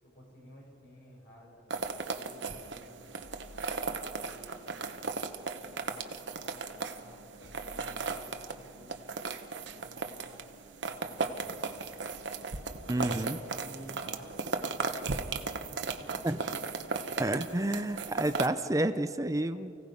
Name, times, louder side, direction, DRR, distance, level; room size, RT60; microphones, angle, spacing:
voice 1, 0.0-3.0 4.2-5.1 5.6-9.0 9.7-10.5 10.8-11.6 12.8-16.5, equal, 70° left, -3 dB, 7.4 m, -54 dB
sound 1, 1.7-18.5, right 4 dB, 65° right, 1.1 m, -36 dB
sound 2, 3.2-4.5 6.4-6.5 7.4-8.8 10.6-10.7 11.2-11.3, equal, 45° left, 1.2 m, -53 dB
voice 2, 12.9-13.4 16.2-16.4 17.2-19.7, right 1 dB, 15° right, 10 dB, 0.5 m, -30 dB
29.0 x 17.0 x 5.3 m, 2.4 s
head